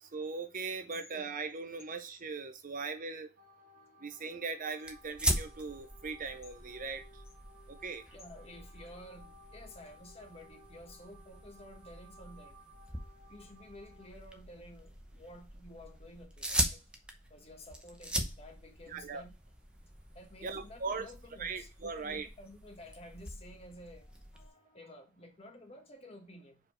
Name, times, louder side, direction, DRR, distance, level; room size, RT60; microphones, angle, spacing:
voice 1, 0.0-3.3 4.0-7.2 7.7-8.0 18.9-19.2 20.4-21.0 21.4-22.3, right 4 dB, 40° right, 0.6 m, -39 dB
sound 1, 3.4-14.1, equal, 80° right, 1.3 m, -60 dB
sound 2, 4.8-24.5, equal, 5° right, 0.8 m, -41 dB
voice 2, 8.1-12.6 13.3-16.8 17.3-19.3 20.1-26.6, left 1 dB, 30° left, 1.4 m, -52 dB
4.9 x 4.4 x 4.3 m
head